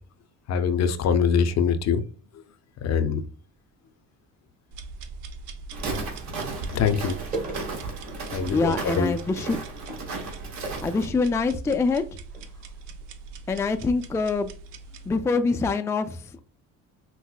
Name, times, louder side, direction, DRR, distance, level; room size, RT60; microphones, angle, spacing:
voice 1, 0.5-2.0 2.8-3.2 6.7-7.2 8.3-9.1, left 6 dB, 55° left, 0.6 m, -23 dB
sound 1, 3.3-3.5 5.2-5.3 6.8-11.2 12.0-12.1 12.3-12.5 13.0-13.1, right 2 dB, 25° right, 1.2 m, -39 dB
sound 2, 4.7-15.1, right 4 dB, 85° right, 0.6 m, -42 dB
Walk footsteps, 5.7-11.1, right 3 dB, 60° right, 1.7 m, -35 dB
voice 2, 8.5-9.6 10.8-12.0 13.5-14.5 15.1-16.2, left 4 dB, 10° left, 0.3 m, -24 dB
5.6 x 2.1 x 2.2 m
supercardioid pair, 80°, 32 cm